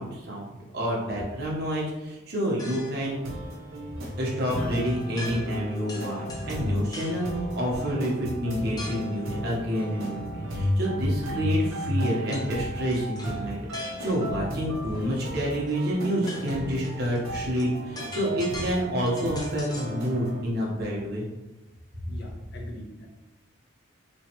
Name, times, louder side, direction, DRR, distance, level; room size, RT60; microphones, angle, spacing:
voice 1, 0.0-3.2 4.2-21.3, equal, 50° right, -4 dB, 1.1 m, -28 dB
sound 1, 2.6-3.1 5.2-5.6 5.9-7.3 8.8-9.2 12.3-12.5 12.9-14.3 15.7-15.8 16.1-20.0, left 1 dB, 20° left, 0.5 m, -41 dB
sound 2, 3.0-20.4, equal, 90° right, 0.8 m, -33 dB
Acoustic guitar / Strum, 4.5-9.3, left 1 dB, 80° left, 0.5 m, -41 dB
voice 2, 22.1-23.1, equal, 50° left, -3 dB, 1.0 m, -41 dB
4.4 x 3.1 x 3.0 m, 1.0 s
head